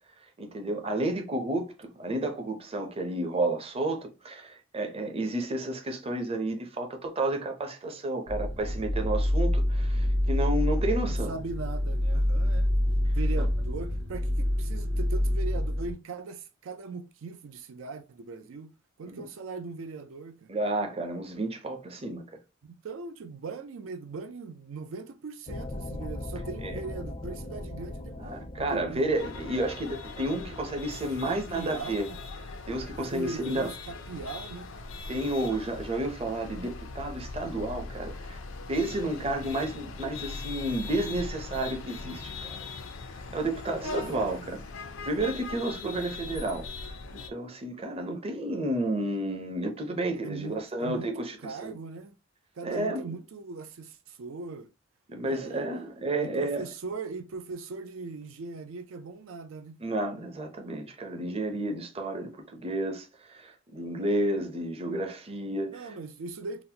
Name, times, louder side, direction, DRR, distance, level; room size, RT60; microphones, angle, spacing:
voice 1, 0.4-11.3 13.4-13.5 19.0-19.2 20.5-22.2 26.6-26.8 28.2-32.1 32.7-33.7 35.1-38.4 38.7-42.6 43.3-44.6 45.0-46.7 47.1-51.7 52.6-53.1 55.1-56.7 59.8-65.9, right 1 dB, 30° right, 0.6 m, -31 dB
sound 1, 8.3-15.9, left 1 dB, 60° right, 1.4 m, -26 dB
voice 2, 11.1-12.7 13.1-18.7 19.0-20.5 22.6-28.2 28.6-29.1 31.3-32.2 33.1-34.7 43.8-44.4 50.1-52.1 52.6-54.7 55.2-55.7 56.2-59.8 65.7-66.6, right 4 dB, 90° right, 0.4 m, -39 dB
sound 2, 25.5-31.0, left 1 dB, 25° left, 0.4 m, -40 dB
sound 3, 29.2-47.3, left 3 dB, 85° left, 0.5 m, -40 dB
3.9 x 2.1 x 2.8 m
head